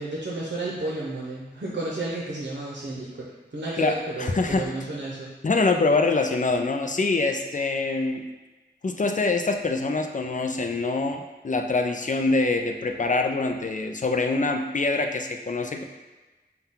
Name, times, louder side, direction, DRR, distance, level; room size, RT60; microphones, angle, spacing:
voice 1, 0.0-5.3, right 2 dB, 65° right, -4 dB, 0.7 m, -32 dB
voice 2, 3.8-4.7 5.4-8.2 8.8-15.8, left 3 dB, 45° left, 5 dB, 0.4 m, -24 dB
5.6 x 2.3 x 3.7 m, 1.2 s
wide cardioid pair, 50°, 19 cm